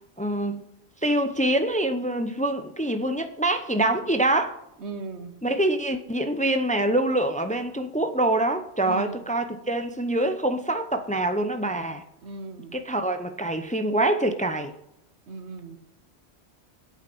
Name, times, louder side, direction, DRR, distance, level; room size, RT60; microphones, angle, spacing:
voice 1, 0.2-0.6 1.0-4.6 5.4-12.0 12.7-14.7, right 1 dB, 10° left, 0.6 m, -25 dB
voice 2, 4.8-5.3 8.8-9.2 12.2-12.8 15.3-15.8, right 3 dB, 90° right, 1.4 m, -37 dB
8.8 x 8.4 x 6.1 m
omnidirectional pair, 1.1 m